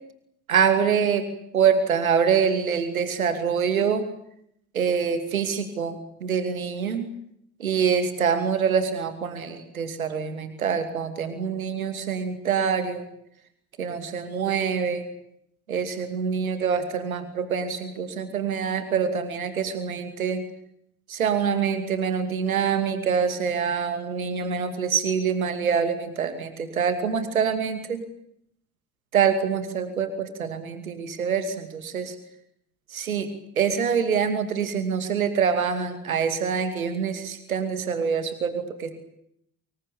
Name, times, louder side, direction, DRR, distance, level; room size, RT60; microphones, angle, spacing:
voice 1, 0.5-1.3 1.5-4.0 4.7-7.1 7.6-13.1 13.8-15.1 15.7-20.4 21.1-28.0 29.1-32.2 32.9-39.0, right 6 dB, 80° right, 10 dB, 2.6 m, -25 dB
25.5 x 22.5 x 8.7 m, 0.73 s
figure-of-eight pair, 50°, 41 cm